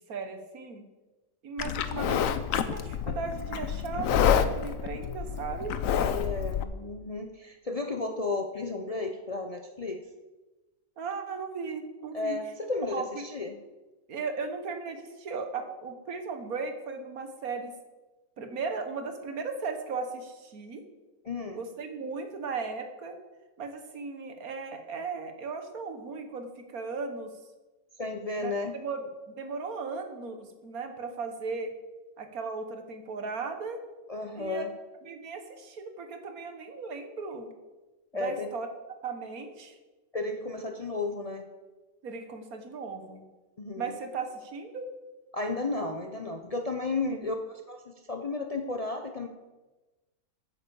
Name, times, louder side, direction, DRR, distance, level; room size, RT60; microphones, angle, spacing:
voice 1, 0.1-0.9 1.4-5.7 11.0-12.4 12.8-13.3 14.1-17.7 18.4-20.8 21.5-23.2 23.6-27.3 28.4-29.1 29.4-31.7 32.2-33.8 34.3-34.7 35.1-37.5 38.1-38.7 39.0-39.8 42.0-43.2 43.8-44.9 47.1-47.2, right 4 dB, 75° right, 7 dB, 1.7 m, -36 dB
Livestock farm animals working animals, 1.6-6.6, left 8 dB, 70° left, 1.1 m, -28 dB
voice 2, 5.9-10.0 12.1-13.6 21.2-21.6 28.0-28.7 34.1-34.7 38.1-38.5 40.1-41.4 43.6-44.0 45.3-49.3, left 3 dB, 35° left, 4 dB, 0.6 m, -33 dB
9.6 x 8.4 x 7.0 m, 1.2 s
omnidirectional pair, 1.6 m